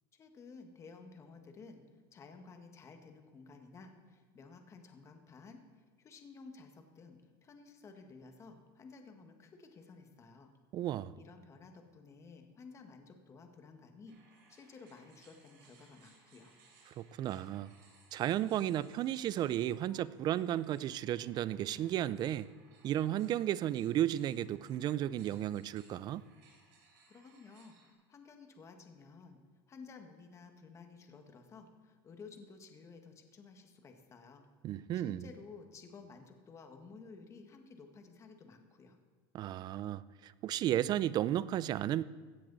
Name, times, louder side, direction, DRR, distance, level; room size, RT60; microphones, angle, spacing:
voice 1, 0.1-1.8 2.1-10.5 11.1-16.5 27.1-29.4 29.7-34.4 34.7-39.0, left 4 dB, 25° left, 1.6 m, -54 dB
voice 2, 10.7-11.1 17.0-17.7 18.1-22.5 22.8-26.2 34.6-35.3 39.3-42.0, right 12 dB, 40° right, 0.4 m, -33 dB
sound 1, 14.1-27.9, right 4 dB, 70° right, 4.5 m, -65 dB
16.5 x 13.0 x 4.1 m
supercardioid pair, 135°, 11 cm